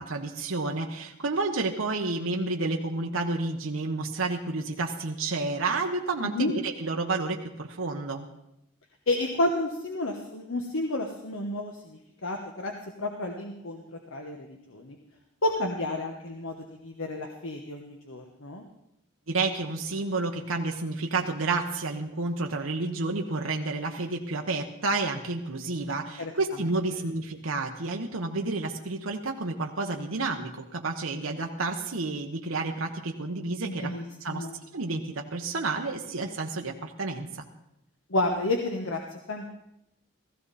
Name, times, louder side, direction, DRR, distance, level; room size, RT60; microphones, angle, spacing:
voice 1, 0.0-8.3 19.3-33.9 34.2-34.4 34.7-37.3, right 3 dB, 80° right, 2 dB, 1.1 m, -30 dB
voice 2, 9.1-12.7 13.0-13.8 14.1-15.0 15.4-16.6 16.8-18.6 26.2-26.3 33.6-34.6 38.1-39.5, left 2 dB, 80° left, 3 dB, 1.3 m, -31 dB
16.0 x 15.5 x 4.2 m, 0.82 s
head